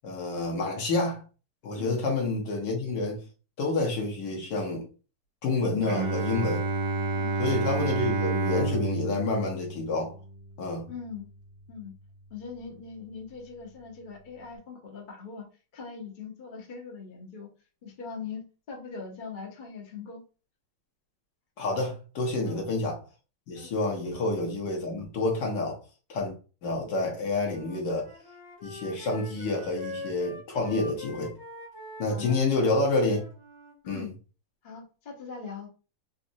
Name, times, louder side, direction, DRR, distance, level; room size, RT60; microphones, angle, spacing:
voice 1, 0.0-1.2 1.6-3.2 3.6-4.9 5.4-6.6 7.4-10.1 10.6-10.9 21.6-23.0 23.5-25.8 26.1-26.3 26.6-28.1 28.6-31.3 32.0-33.2 33.9-34.0, left 2 dB, 65° left, 1.5 m, -28 dB
Bowed string instrument, 5.8-11.6, right 2 dB, 85° right, 1.5 m, -30 dB
voice 2, 10.9-11.3 11.7-11.9 12.3-15.5 15.7-17.5 17.8-20.2 22.4-22.6 23.6-23.7 32.1-32.4 33.8-34.1 34.6-35.7, left 5 dB, 40° left, 0.7 m, -41 dB
Wind instrument woodwind instrument, 27.4-33.8, left 1 dB, 15° left, 1.4 m, -44 dB
4.0 x 2.5 x 2.6 m
omnidirectional pair, 2.1 m